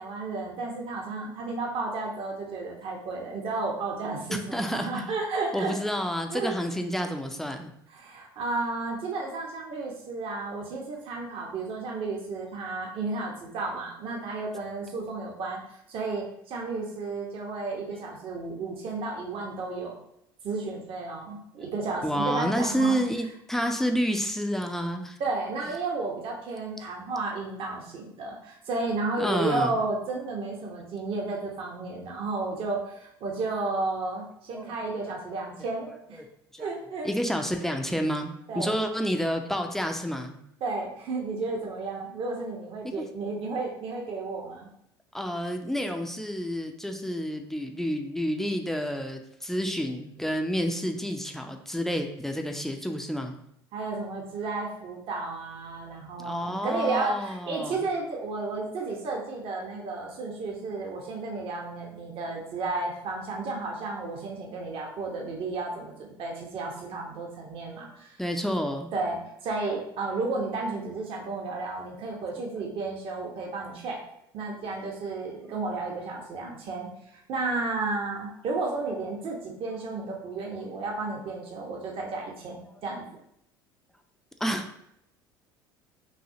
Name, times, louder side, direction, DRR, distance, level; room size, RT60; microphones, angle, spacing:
voice 1, 0.0-5.7 6.3-6.6 7.9-15.6 15.9-19.9 20.4-23.1 25.2-36.2 36.6-37.1 38.5-38.8 40.6-44.7 53.7-68.5 68.9-74.0 74.3-83.2, right 3 dB, 45° right, -1 dB, 1.1 m, -32 dB
voice 2, 4.3-5.0 5.5-7.7 22.0-25.2 29.2-29.8 34.5-34.7 35.0-35.2 35.8-35.9 36.5-36.7 37.0-40.4 43.0-43.1 45.1-53.4 56.2-57.8 68.2-68.9 84.4-84.8, equal, 5° left, 4 dB, 0.6 m, -29 dB
5.9 x 2.7 x 2.8 m, 0.75 s
figure-of-eight pair, 65°, 12 cm